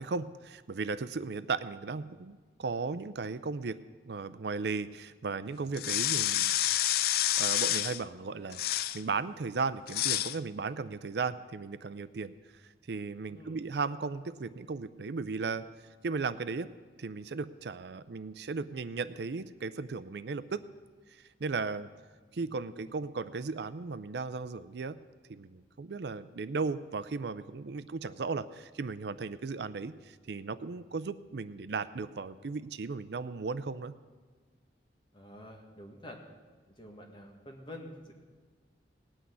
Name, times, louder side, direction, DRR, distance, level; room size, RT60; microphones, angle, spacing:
voice 1, 0.0-3.8 4.1-6.6 7.4-12.3 12.9-15.6 16.0-16.7 17.0-20.6 21.1-21.9 22.3-25.0 25.3-33.9, right 4 dB, 65° right, 14 dB, 0.5 m, -36 dB
sound 1, 5.7-8.0 8.5-9.0 9.9-10.4, left 13 dB, 55° left, 0.3 m, -29 dB
voice 2, 13.3-13.6 22.4-22.9 35.1-36.2 36.8-38.1, left 1 dB, 25° left, 1 dB, 1.9 m, -48 dB
18.0 x 6.3 x 9.4 m, 1.4 s
head